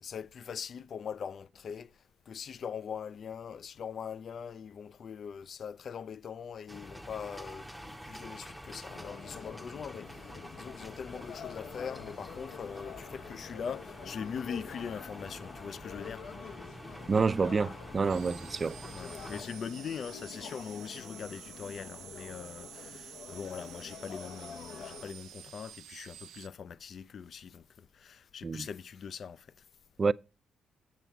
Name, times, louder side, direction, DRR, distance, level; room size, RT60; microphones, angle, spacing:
voice 1, 0.0-1.9 2.3-10.3 10.6-16.2 18.9-29.5, left 7 dB, 55° left, 0.3 m, -42 dB
sound 1, 6.7-19.4, equal, ahead, 0.7 m, -47 dB
sound 2, 8.9-25.1, left 6 dB, 75° left, 0.7 m, -47 dB
voice 2, 17.1-18.8 28.4-28.6 30.0-30.1, right 4 dB, 35° right, 0.3 m, -28 dB
sound 3, 18.1-26.5, right 10 dB, 80° right, 0.5 m, -50 dB
7.4 x 6.9 x 4.5 m
cardioid pair, 90°, 0 cm